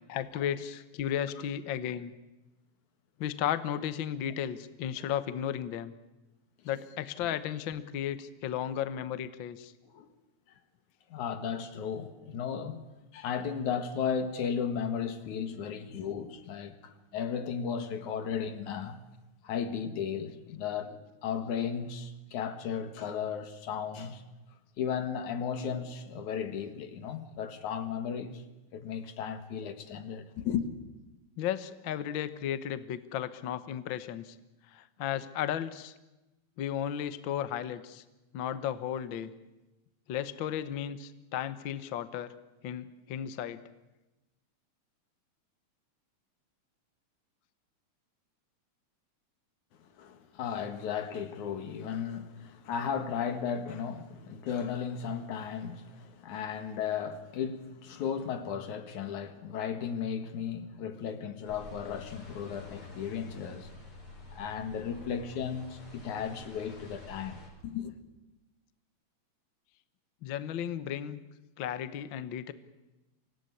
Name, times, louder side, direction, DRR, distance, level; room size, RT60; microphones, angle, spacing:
voice 1, 0.1-2.1 3.2-5.9 6.6-9.7 15.8-15.9 31.4-34.4 34.7-35.9 36.6-38.0 38.3-39.3 40.1-42.3 42.6-43.6 70.2-71.2 71.6-72.5, left 10 dB, 60° left, 1.3 m, -34 dB
voice 2, 11.1-12.8 13.1-19.0 19.4-24.2 24.8-28.4 28.7-30.7 49.8-63.7 64.3-68.0, left 7 dB, 80° left, 3.1 m, -35 dB
sound 1, 61.4-67.5, left 3 dB, 45° left, 6.2 m, -48 dB
25.5 x 18.0 x 9.8 m
omnidirectional pair, 3.4 m